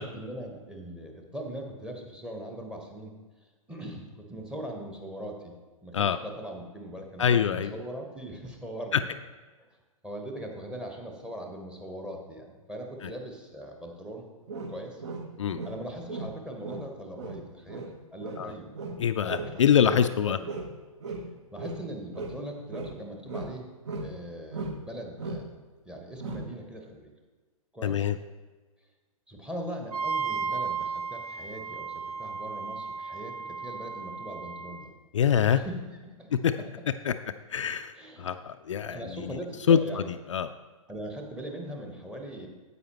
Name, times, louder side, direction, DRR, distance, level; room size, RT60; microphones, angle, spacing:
voice 1, 0.0-3.1 3.7-5.6 5.8-9.1 9.6-9.7 10.0-14.3 14.7-15.0 15.6-18.7 19.2-20.5 21.5-23.7 24.0-27.1 27.7-28.0 29.3-34.9 35.5-36.3 36.6-36.7 37.9-38.3 38.8-40.1 40.9-42.5, right 1 dB, 5° right, 3 dB, 1.0 m, -40 dB
voice 2, 7.2-7.8 8.9-9.0 13.0-13.1 15.4-15.6 18.4-18.5 19.0-20.4 27.8-28.2 35.1-35.6 36.3-36.5 37.1-37.2 37.5-39.4 39.7-40.0 40.3-40.5, left 8 dB, 60° left, 9 dB, 0.4 m, -24 dB
sound 1, 14.5-20.1 20.4-22.4 22.7-24.2 24.5-24.9 25.2-25.5 26.2-26.6, right 3 dB, 50° right, 1.1 m, -37 dB
Wind instrument woodwind instrument, 29.9-34.9, right 5 dB, 90° right, 0.7 m, -34 dB
9.4 x 8.3 x 3.0 m, 1.3 s
figure-of-eight pair, 120°, 18 cm